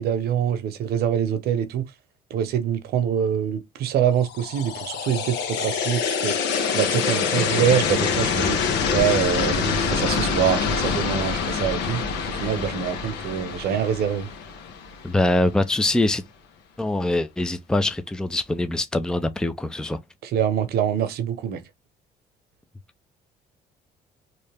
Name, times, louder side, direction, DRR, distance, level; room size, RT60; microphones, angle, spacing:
voice 1, 0.0-1.9 2.3-6.4 6.7-14.3 20.2-21.6, right 9 dB, 70° right, 0.9 m, -25 dB
sound 1, 4.3-15.3, left 6 dB, 85° left, 1.0 m, -25 dB
voice 2, 15.0-16.2 16.8-20.0, left 2 dB, 5° left, 0.5 m, -23 dB
3.2 x 2.8 x 3.4 m
cardioid pair, 110°, 17 cm